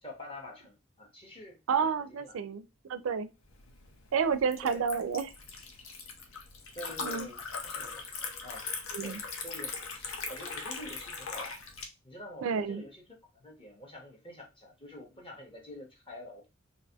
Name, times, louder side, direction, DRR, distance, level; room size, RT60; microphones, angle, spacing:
voice 1, 0.0-2.4 4.6-4.8 6.7-8.1 8.4-8.6 9.0-11.6 12.0-13.0 13.3-16.5, left 1 dB, 25° left, 1.1 m, -47 dB
voice 2, 1.7-3.3 4.1-5.3 7.0-7.3 8.9-9.2 12.4-12.8, right 6 dB, 85° right, 0.4 m, -30 dB
Liquid, 3.5-11.9, left 4 dB, 85° left, 0.7 m, -40 dB
3.9 x 2.5 x 2.8 m
head